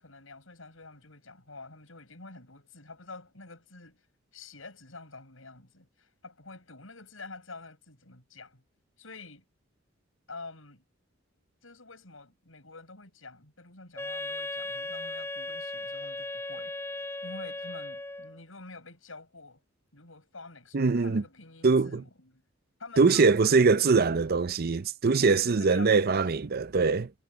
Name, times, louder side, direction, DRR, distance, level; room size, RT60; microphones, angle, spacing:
voice 1, 0.0-4.0 4.3-8.6 9.0-9.4 10.3-10.8 11.6-16.8 17.2-19.6 19.9-22.4 22.8-23.8 25.2-26.2, left 3 dB, 85° left, 6.5 m, -48 dB
Wind instrument woodwind instrument, 14.0-18.4, left 2 dB, 15° left, 1.5 m, -37 dB
voice 2, 20.7-21.2 21.6-22.0 23.0-27.1, right 4 dB, 50° right, 0.6 m, -23 dB
head